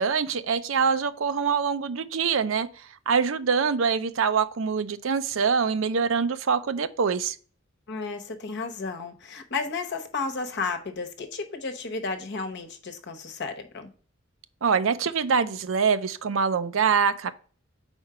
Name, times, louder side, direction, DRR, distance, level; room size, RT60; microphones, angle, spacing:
voice 1, 0.0-7.4 14.6-17.3, right 6 dB, 70° right, 0.5 m, -24 dB
voice 2, 7.9-13.9, left 4 dB, 55° left, 1.0 m, -33 dB
4.9 x 4.4 x 5.5 m
head